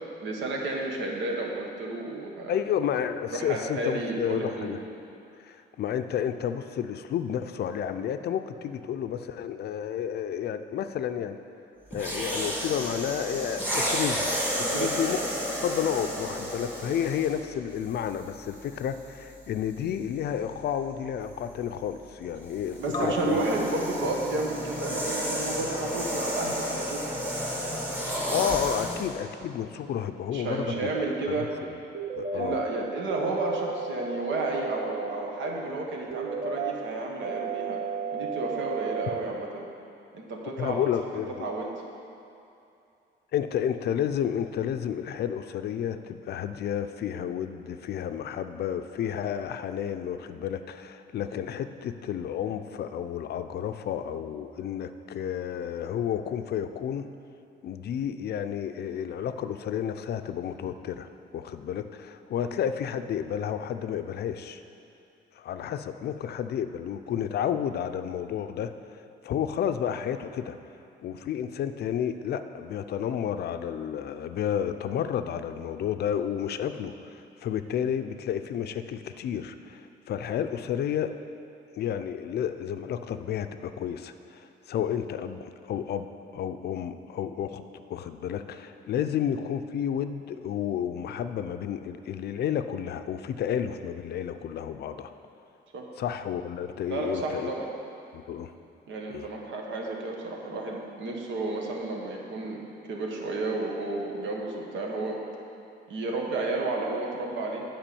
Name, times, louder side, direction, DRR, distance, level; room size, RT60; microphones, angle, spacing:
voice 1, 0.2-2.6 3.3-4.7 14.7-15.0 22.8-27.1 30.3-31.5 32.3-37.8 38.1-39.6 40.1-40.8 41.1-41.7 62.4-62.5 89.0-89.1 95.7-95.8 96.9-97.7 98.9-102.6 102.8-105.2 105.9-107.6, right 2 dB, 85° right, -1 dB, 1.4 m, -32 dB
voice 2, 2.5-4.8 5.4-11.4 11.9-14.3 14.6-15.2 15.6-23.4 28.3-30.9 31.3-31.4 32.1-32.6 40.6-41.5 43.3-57.1 57.6-64.6 65.4-68.7 69.2-70.6 71.0-81.1 81.7-86.1 86.3-95.1 96.0-97.5 98.1-98.5 99.1-99.3, left 9 dB, 60° left, 9 dB, 0.5 m, -31 dB
sound 1, 11.9-17.4 18.3-18.5 22.4-29.1, equal, 10° right, 2.0 m, -31 dB
sound 2, 22.9-29.8 30.2-30.3, left 2 dB, 20° left, 0.7 m, -38 dB
sound 3, 31.9-32.5 33.1-35.1 36.1-36.7 37.2-39.2, right 5 dB, 40° right, 1.0 m, -33 dB
8.9 x 5.0 x 6.9 m, 2.7 s
cardioid pair, 125°, 19 cm